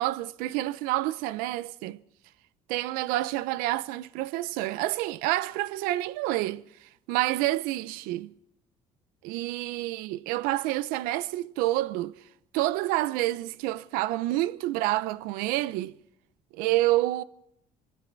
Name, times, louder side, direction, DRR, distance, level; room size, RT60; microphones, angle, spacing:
voice 1, 0.0-2.0 2.7-8.3 9.2-12.2 12.5-16.0 16.5-17.2, right 16 dB, 85° right, 0.7 m, -28 dB
24.5 x 14.5 x 4.0 m
cardioid pair, 115°, 14 cm